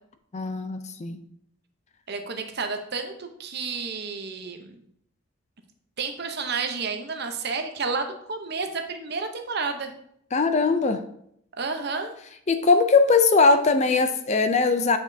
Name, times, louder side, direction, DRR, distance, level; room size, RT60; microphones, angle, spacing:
voice 1, 0.3-1.2 10.3-11.0 12.5-15.0, left 4 dB, 30° left, 0.4 m, -20 dB
voice 2, 2.1-4.7 6.0-9.9 11.6-12.1, right 4 dB, 50° right, 0.8 m, -31 dB
8.8 x 5.2 x 2.7 m
head